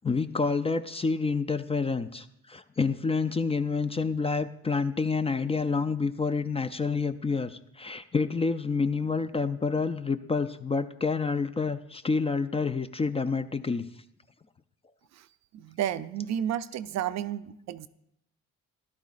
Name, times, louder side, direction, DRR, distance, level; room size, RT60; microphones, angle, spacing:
voice 1, 0.0-13.9, left 4 dB, 20° left, 11 dB, 0.4 m, -28 dB
voice 2, 15.5-17.9, right 10 dB, 65° right, 13 dB, 0.5 m, -31 dB
13.0 x 11.5 x 2.5 m, 0.79 s
cardioid pair, 90°, 30 cm